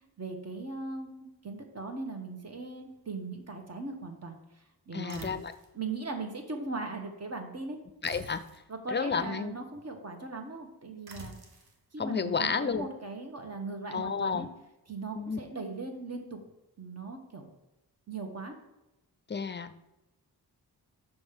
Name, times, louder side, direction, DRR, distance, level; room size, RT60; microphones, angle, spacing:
voice 1, 0.2-4.4 4.9-5.4 5.7-7.8 8.7-11.4 11.9-14.5 14.9-16.4 16.8-17.5 18.1-18.5, right 3 dB, 40° right, 4 dB, 1.3 m, -39 dB
voice 2, 4.9-5.5 8.0-8.4 8.9-9.5 12.0-12.9 13.9-14.5 15.1-15.4 19.3-19.7, left 5 dB, 30° left, 12 dB, 0.5 m, -31 dB
sound 1, 5.1-5.7 8.0-8.7 11.1-11.8, right 2 dB, 65° right, 1.2 m, -47 dB
6.1 x 5.3 x 5.2 m, 0.97 s
cardioid pair, 70°, 40 cm